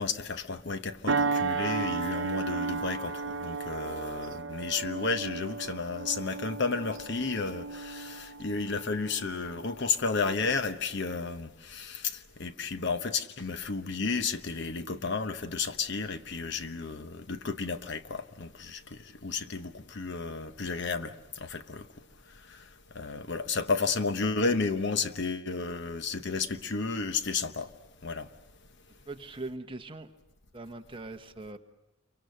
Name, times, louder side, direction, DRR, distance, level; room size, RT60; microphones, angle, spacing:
voice 1, 0.0-21.1 21.4-21.9 22.9-27.7 28.0-28.3, left 4 dB, 60° left, 1.0 m, -32 dB
sound 1, 1.1-9.9 10.4-10.6, right 4 dB, 80° right, 0.8 m, -34 dB
voice 2, 29.1-30.1 30.5-31.6, right 2 dB, 25° right, 1.2 m, -41 dB
29.5 x 24.0 x 6.6 m
head